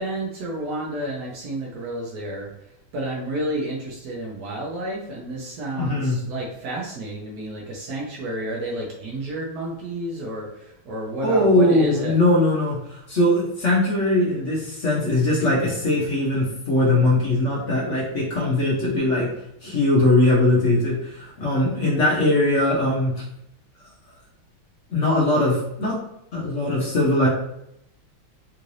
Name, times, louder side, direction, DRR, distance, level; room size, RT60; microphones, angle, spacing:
voice 1, 0.0-2.5 2.9-12.2, right 1 dB, 70° right, -3 dB, 0.9 m, -30 dB
voice 2, 5.8-6.2 11.2-19.3 19.6-23.2 24.9-25.9 26.3-27.3, left 1 dB, 65° left, -5 dB, 0.7 m, -20 dB
3.8 x 3.1 x 2.6 m, 0.78 s
omnidirectional pair, 2.3 m